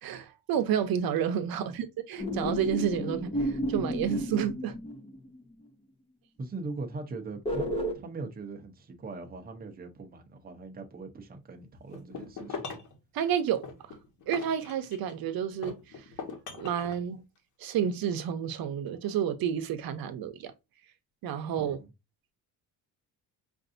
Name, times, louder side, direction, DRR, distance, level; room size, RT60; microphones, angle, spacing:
voice 1, 0.0-4.7 13.1-13.6 14.3-16.0 16.5-17.2 17.6-20.5 21.2-21.8, right 9 dB, 75° right, 0.8 m, -30 dB
sound 1, 2.2-5.4 7.4-7.9, equal, 15° left, 0.6 m, -32 dB
voice 2, 6.4-12.8 21.6-21.9, right 3 dB, 25° right, 0.7 m, -41 dB
sound 2, 11.9-13.0 13.6-15.2 15.6-17.0, left 5 dB, 55° left, 1.1 m, -40 dB
5.2 x 2.6 x 2.6 m
cardioid pair, 170°, 36 cm